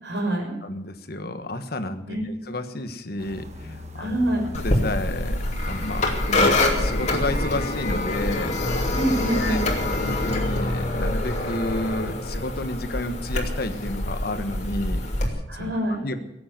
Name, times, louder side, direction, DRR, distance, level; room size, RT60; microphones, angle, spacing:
voice 1, 0.0-0.6 2.1-2.3 4.0-4.5 8.9-9.6 15.5-16.0, right 1 dB, 65° right, 2 dB, 6.1 m, -25 dB
voice 2, 0.6-4.2 4.6-8.8 9.3-9.6 9.9-15.7 16.0-16.2, left 1 dB, 55° left, 9 dB, 1.4 m, -31 dB
sound 1, 3.2-9.1, left 1 dB, 35° right, 1.6 m, -41 dB
sound 2, 4.5-15.3, left 1 dB, 40° left, 2.6 m, -25 dB
17.5 x 8.6 x 9.1 m, 0.87 s
head